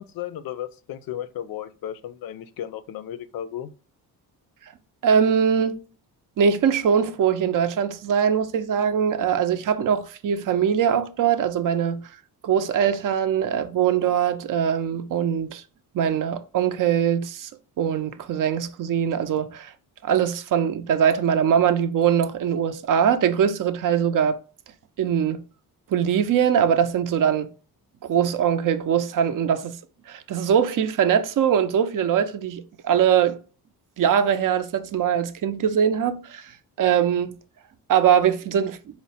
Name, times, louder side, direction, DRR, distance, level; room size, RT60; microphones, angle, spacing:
voice 1, 0.0-3.7, left 11 dB, 65° left, 0.5 m, -34 dB
voice 2, 5.0-5.8 6.4-12.0 12.4-15.6 15.9-17.5 17.8-19.7 20.0-24.4 25.0-25.4 25.9-27.5 28.0-29.8 30.1-33.4 34.0-36.5 36.8-37.3 37.9-38.8, right 8 dB, 55° right, 0.5 m, -22 dB
4.3 x 2.0 x 4.1 m
cardioid pair, 110°, 39 cm